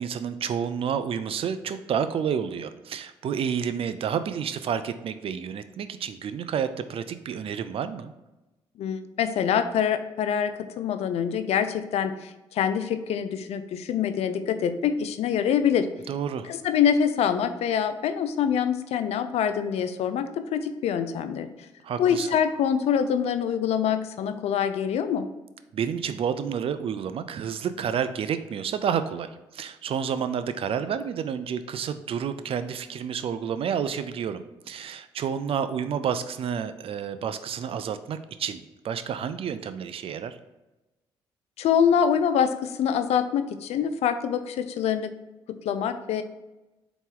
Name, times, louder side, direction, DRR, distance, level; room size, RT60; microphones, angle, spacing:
voice 1, 0.0-8.1 16.1-16.5 21.8-22.3 25.7-40.4, right 7 dB, 55° right, 11 dB, 0.4 m, -30 dB
voice 2, 8.8-15.9 16.4-21.5 22.0-25.3 41.6-45.1 45.5-46.2, left 8 dB, 70° left, 9 dB, 0.4 m, -25 dB
4.1 x 3.0 x 3.7 m, 1.0 s
supercardioid pair, 55°, 11 cm